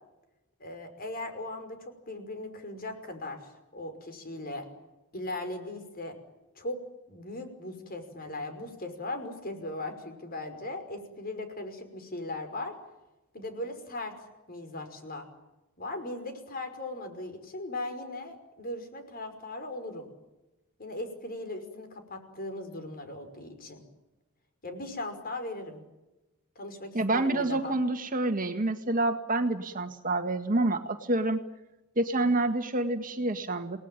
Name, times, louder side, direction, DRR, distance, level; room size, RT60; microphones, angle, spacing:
voice 1, 0.6-3.4 3.7-4.7 5.1-6.1 6.6-6.8 7.1-12.7 13.3-14.2 14.5-15.3 15.8-20.1 20.8-23.8 24.6-25.8 26.6-27.8, left 2 dB, 45° left, 7 dB, 5.6 m, -38 dB
voice 2, 26.9-31.4 32.0-33.8, right 2 dB, 40° right, 7 dB, 1.9 m, -28 dB
29.0 x 19.5 x 9.1 m, 1.0 s
head